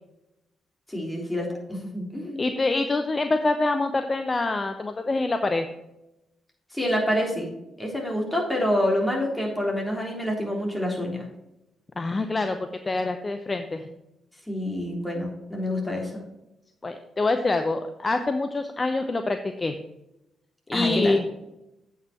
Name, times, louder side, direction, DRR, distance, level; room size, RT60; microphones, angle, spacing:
voice 1, 0.9-2.4 6.7-7.5 7.8-11.2 14.5-16.2 20.7-21.2, left 1 dB, 10° left, -1 dB, 3.6 m, -27 dB
voice 2, 2.4-5.7 12.0-13.8 16.8-19.7 20.7-21.2, left 2 dB, 30° left, 7 dB, 0.7 m, -25 dB
8.2 x 5.6 x 5.9 m, 0.90 s
hypercardioid pair, 45°, 0 cm